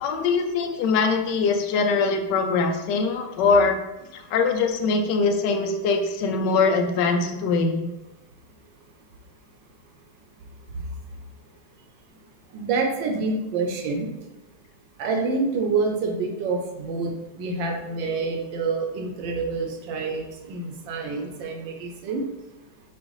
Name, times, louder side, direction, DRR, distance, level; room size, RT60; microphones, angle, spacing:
voice 1, 0.0-3.8 4.1-7.9, left 4 dB, 75° left, 5 dB, 1.1 m, -22 dB
voice 2, 12.5-14.1 15.0-22.3, right 4 dB, 75° right, 2 dB, 1.4 m, -27 dB
6.2 x 2.5 x 3.1 m, 0.99 s
omnidirectional pair, 2.2 m